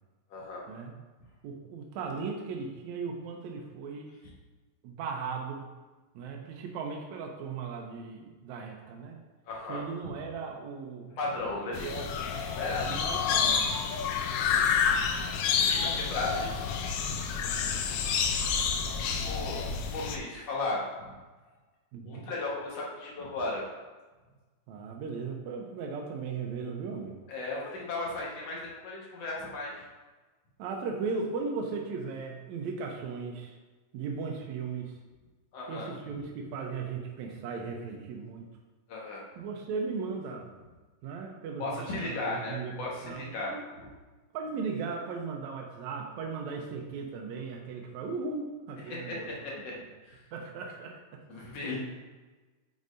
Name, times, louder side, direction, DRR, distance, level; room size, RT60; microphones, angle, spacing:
voice 1, 0.3-0.7 9.5-10.1 11.1-11.9 12.5-13.0 14.3-14.7 15.6-16.7 19.2-19.7 19.9-21.1 22.0-23.7 27.3-29.8 35.5-35.9 38.9-39.2 41.6-43.5 48.9-49.8 50.0-50.2 51.3-51.8, left 2 dB, 60° left, -4 dB, 2.4 m, -36 dB
voice 2, 1.4-4.1 4.8-5.7 6.2-9.2 9.7-11.2 11.7-12.1 12.4-13.8 14.5-14.8 17.5-17.8 21.9-22.3 24.7-27.2 30.6-33.6 33.9-35.0 35.7-38.5 39.4-40.5 41.0-43.7 44.3-49.8 50.3-51.2, right 5 dB, 80° right, 1 dB, 2.0 m, -37 dB
sound 1, 11.7-20.2, left 6 dB, 80° left, 1.9 m, -29 dB
9.1 x 6.4 x 2.6 m, 1.3 s
omnidirectional pair, 3.3 m